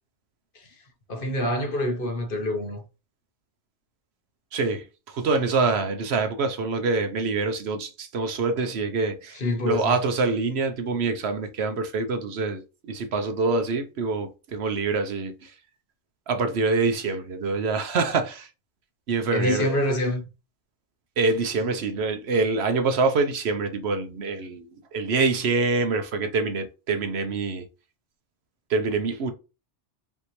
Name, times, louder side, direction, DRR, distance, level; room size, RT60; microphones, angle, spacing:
voice 1, 1.1-2.8 9.4-10.0 19.3-20.3, left 1 dB, 50° left, 1.1 m, -26 dB
voice 2, 4.5-15.5 16.3-18.5 19.1-19.8 21.2-27.7 28.7-29.3, right 4 dB, 65° right, 0.9 m, -25 dB
5.2 x 2.8 x 3.1 m
omnidirectional pair, 1.2 m